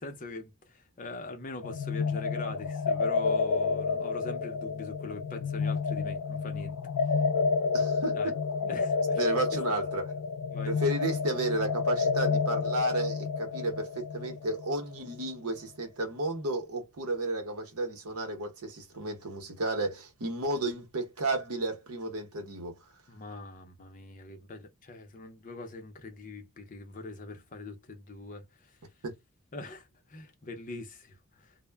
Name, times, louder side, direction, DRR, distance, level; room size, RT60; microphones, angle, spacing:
voice 1, 0.0-6.8 7.1-7.2 8.1-8.3 8.7-9.6 10.5-10.7 23.1-28.8 29.5-31.6, left 2 dB, 35° left, 0.6 m, -42 dB
sound 1, 1.6-15.2, left 5 dB, 90° left, 0.3 m, -30 dB
voice 2, 7.7-8.3 8.6-8.8 9.2-10.1 10.7-22.7 29.0-29.1, right 2 dB, 80° right, 0.9 m, -32 dB
2.1 x 2.1 x 3.3 m
head